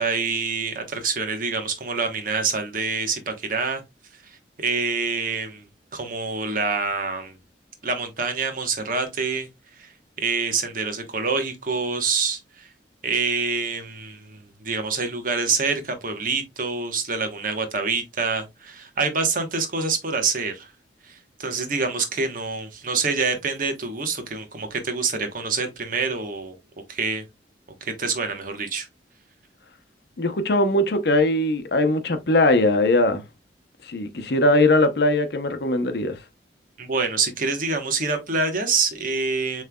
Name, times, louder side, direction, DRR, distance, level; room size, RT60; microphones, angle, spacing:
voice 1, 0.0-3.8 4.2-5.6 5.9-7.3 7.8-9.5 9.8-9.9 10.2-12.7 13.0-20.7 21.0-26.6 26.9-27.2 27.8-28.9 36.8-39.6, right 4 dB, 50° right, 1.1 m, -26 dB
voice 2, 30.2-33.2 33.9-36.2, left 2 dB, 60° left, 0.7 m, -20 dB
7.3 x 3.2 x 2.3 m
head